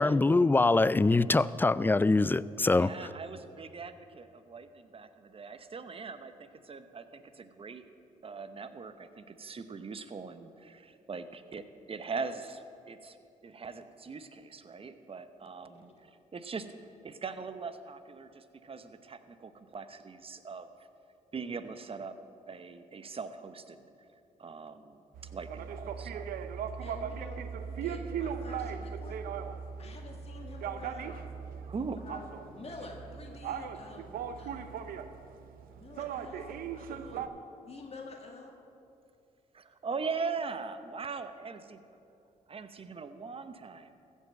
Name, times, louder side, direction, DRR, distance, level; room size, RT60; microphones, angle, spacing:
voice 1, 0.0-2.9, left 3 dB, 15° left, 0.3 m, -24 dB
voice 2, 2.8-7.8 8.2-13.2 13.4-16.7 17.0-20.7 21.3-22.1 22.5-23.9 24.4-25.0 25.3-26.3 31.7-32.1 39.5-41.8 42.5-43.9, right 5 dB, 40° right, 0.9 m, -41 dB
sound 1, 25.1-37.3, right 7 dB, 80° right, 0.6 m, -39 dB
voice 3, 26.8-29.2 29.8-31.3 32.0-34.7 35.7-37.3 37.7-38.6, left 3 dB, 45° left, 2.0 m, -48 dB
15.0 x 5.6 x 7.5 m
supercardioid pair, 55°, 15 cm